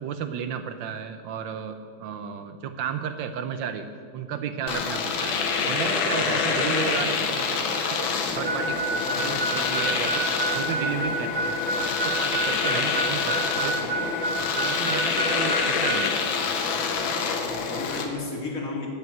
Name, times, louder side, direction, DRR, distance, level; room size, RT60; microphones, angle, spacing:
voice 1, 0.0-3.9 4.1-8.8 9.0-10.3 10.5-11.6 11.9-14.1 14.6-16.3, right 7 dB, 70° right, 8 dB, 1.2 m, -33 dB
Domestic sounds home sounds, 4.7-18.1, left 5 dB, 70° left, 1.9 m, -27 dB
voice 2, 6.2-6.6 9.0-9.2 17.4-18.9, left 3 dB, 40° left, -1 dB, 2.2 m, -35 dB
Harmonica, 8.4-16.0, right 3 dB, 55° right, 3.7 m, -28 dB
13.0 x 5.6 x 9.2 m, 2.4 s
omnidirectional pair, 2.3 m